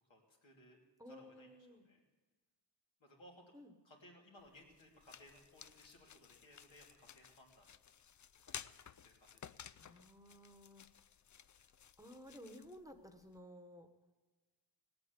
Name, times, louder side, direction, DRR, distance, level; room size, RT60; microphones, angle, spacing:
voice 1, 0.1-0.8 1.1-2.0 3.0-3.5 3.8-7.7 8.4-8.7 9.0-9.6, left 1 dB, 85° left, -2 dB, 3.1 m, -62 dB
voice 2, 1.0-1.9 3.5-3.7 9.8-10.9 11.6-11.7 12.0-13.9, equal, 10° right, 6 dB, 1.2 m, -55 dB
sound 1, 4.4-13.4, left 8 dB, 45° left, 0.4 m, -56 dB
18.0 x 8.8 x 8.1 m, 1.3 s
wide cardioid pair, 85°, 45 cm